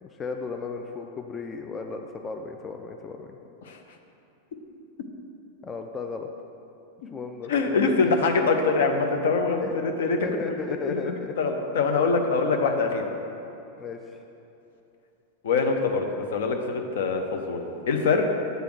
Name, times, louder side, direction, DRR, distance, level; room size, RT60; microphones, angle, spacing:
voice 1, 0.0-3.4 5.6-6.3 7.1-8.2 9.6-9.7 10.2-11.3 13.8-14.2, left 4 dB, 20° left, 4 dB, 0.3 m, -35 dB
voice 2, 7.5-10.6 10.9-11.1 11.4-13.1 15.4-18.3, left 4 dB, 60° left, 4 dB, 0.6 m, -24 dB
7.8 x 3.4 x 6.1 m, 2.8 s
figure-of-eight pair, 90°, 0 cm